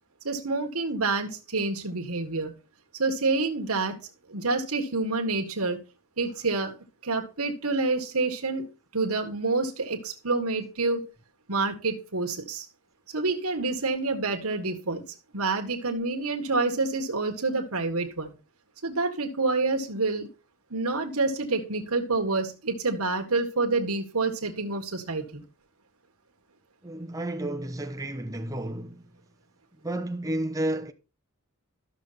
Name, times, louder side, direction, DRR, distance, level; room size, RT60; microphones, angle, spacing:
voice 1, 0.2-2.5 3.0-4.0 4.3-5.8 6.2-6.7 7.0-8.7 8.9-11.1 11.5-12.7 13.1-15.0 15.3-18.3 18.8-20.3 20.7-25.4, right 3 dB, 75° right, 1.7 m, -28 dB
voice 2, 26.8-29.1 29.8-30.9, right 1 dB, 15° right, 0.9 m, -31 dB
13.0 x 6.6 x 4.1 m
head